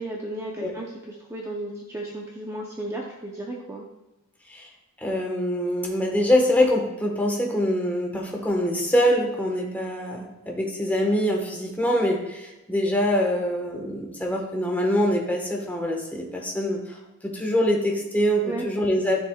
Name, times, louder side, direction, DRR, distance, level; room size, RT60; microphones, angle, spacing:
voice 1, 0.0-3.8 18.4-18.7, right 1 dB, 15° right, -2 dB, 0.7 m, -34 dB
voice 2, 5.0-19.3, equal, 10° left, 0 dB, 1.3 m, -24 dB
13.0 x 6.9 x 2.4 m, 1.0 s
head